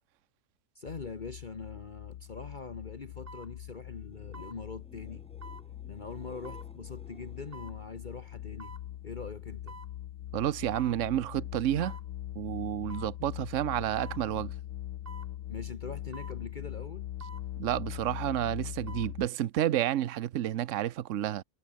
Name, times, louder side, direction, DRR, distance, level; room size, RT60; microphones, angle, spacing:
voice 1, 0.7-5.2 5.9-8.7 9.0-9.8 15.5-17.1, left 4 dB, 35° left, 1.4 m, -43 dB
sound 1, 0.8-19.3, left 12 dB, 75° left, 1.1 m, -42 dB
sound 2, 2.1-2.3 3.3-3.5 4.3-4.6 5.4-5.7 6.4-6.7 7.5-7.8 8.6-8.8 9.7-9.9 10.7-11.0 11.8-12.1 12.9-13.2 14.0-14.2 15.1-15.3 16.1-16.4 17.2-17.5 18.6-19.1 19.5-19.6, right 3 dB, 45° right, 2.7 m, -48 dB
sound 3, 3.8-9.6 9.9-10.5 17.6-17.7, equal, 5° left, 3.1 m, -58 dB
voice 2, 10.3-11.9 12.4-14.5 17.6-21.4, right 12 dB, 70° right, 1.1 m, -30 dB
omnidirectional pair, 1.4 m